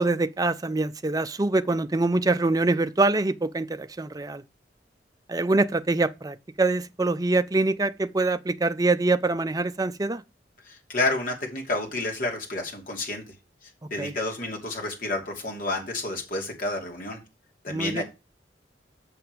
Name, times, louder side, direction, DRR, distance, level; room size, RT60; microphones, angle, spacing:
voice 1, 0.0-4.4 5.3-10.2 14.0-14.1 17.7-18.0, right 2 dB, 20° right, 0.5 m, -24 dB
voice 2, 10.6-13.2 13.9-17.2 17.6-18.0, left 2 dB, 50° left, 2.6 m, -30 dB
6.9 x 6.9 x 4.6 m
head